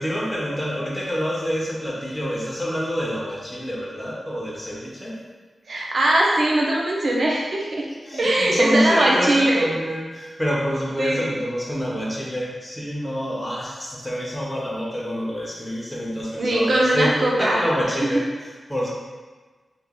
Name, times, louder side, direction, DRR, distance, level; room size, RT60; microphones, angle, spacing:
voice 1, 0.0-5.2 8.0-17.1 17.4-18.9, equal, 5° left, -5 dB, 0.7 m, -27 dB
voice 2, 5.7-7.9 8.2-9.7 11.0-11.3 16.4-17.6, right 1 dB, 60° right, -2 dB, 0.6 m, -20 dB
2.8 x 2.4 x 3.7 m, 1.3 s
wide cardioid pair, 125°, 0 cm